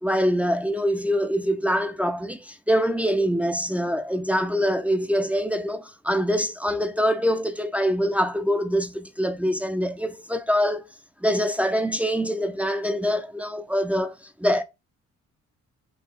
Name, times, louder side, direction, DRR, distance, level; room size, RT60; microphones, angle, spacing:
voice 1, 0.0-10.8 11.2-14.1 14.4-14.6, equal, 5° right, 0.6 m, -24 dB
5.6 x 2.6 x 3.4 m
cardioid pair, 90°, 30 cm